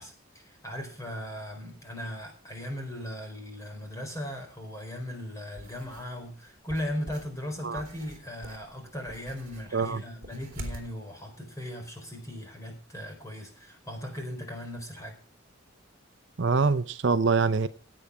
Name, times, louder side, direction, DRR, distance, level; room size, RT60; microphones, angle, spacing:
voice 1, 0.0-15.2, equal, 15° left, 4.4 m, -38 dB
sound 1, 5.6-6.1 6.7-10.9, right 1 dB, 40° right, 3.0 m, -44 dB
voice 2, 16.4-17.7, right 4 dB, 55° right, 0.6 m, -24 dB
17.0 x 8.6 x 4.8 m
head